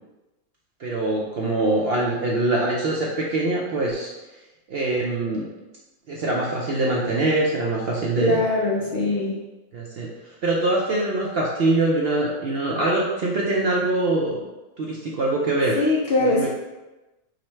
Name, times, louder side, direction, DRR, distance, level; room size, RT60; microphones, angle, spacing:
voice 1, 0.8-4.1 4.7-5.4 6.1-8.4 9.7-10.1 10.4-14.4 14.8-15.8 16.3-16.5, right 2 dB, 65° right, -2 dB, 0.6 m, -23 dB
voice 2, 8.2-9.4 15.8-16.5, left 2 dB, 60° left, -3 dB, 0.6 m, -21 dB
5.0 x 2.1 x 4.3 m, 1.1 s
omnidirectional pair, 1.5 m